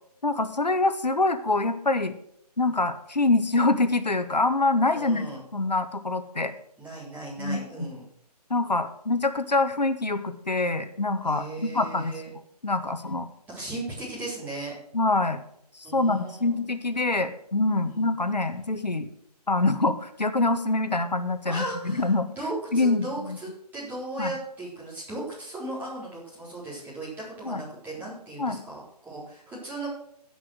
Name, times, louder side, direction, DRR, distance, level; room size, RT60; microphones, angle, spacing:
voice 1, 0.2-2.1 2.6-6.5 7.4-7.9 8.5-12.2 12.6-13.3 14.9-15.4 15.7-19.1 19.5-22.3 22.7-23.4 24.2-24.3 27.4-27.6 28.4-28.6, left 2 dB, 90° left, 9 dB, 1.3 m, -25 dB
voice 2, 4.9-5.4 6.8-8.1 11.2-12.3 13.5-14.7 15.8-16.6 17.9-18.0 21.5-29.9, right 2 dB, 10° right, -7 dB, 4.0 m, -37 dB
15.0 x 6.1 x 6.3 m, 0.70 s
figure-of-eight pair, 150°, 21 cm